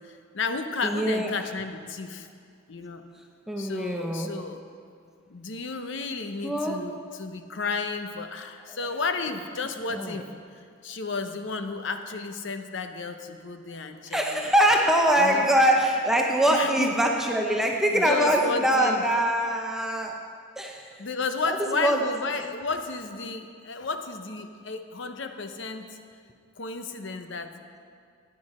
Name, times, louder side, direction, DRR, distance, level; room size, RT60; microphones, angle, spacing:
voice 1, 0.1-2.3 2.7-3.0 3.6-4.6 5.3-10.3 10.8-14.5 15.2-15.5 16.5-16.9 17.9-19.0 21.0-26.0 26.6-27.5, left 4 dB, 65° left, 7 dB, 0.8 m, -32 dB
voice 2, 0.8-1.5 3.5-4.5 6.4-7.0 8.8-8.9 9.9-10.2 14.1-21.0 21.4-22.2, right 1 dB, ahead, 1 dB, 0.7 m, -24 dB
14.5 x 9.6 x 4.3 m, 2.2 s
head